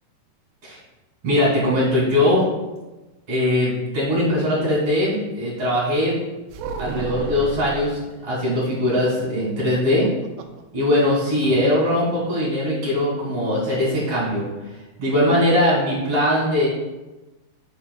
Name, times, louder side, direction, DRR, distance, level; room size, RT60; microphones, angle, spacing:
voice 1, 1.2-2.5 3.3-6.2 6.8-10.1 10.7-14.5 15.0-16.7, left 1 dB, 35° right, -7 dB, 3.1 m, -20 dB
sound 1, 6.5-7.9 9.7-10.6 10.9-11.0 11.4-11.7, right 6 dB, 85° right, 2.6 m, -32 dB
12.5 x 6.2 x 2.4 m, 1.1 s
omnidirectional pair, 4.6 m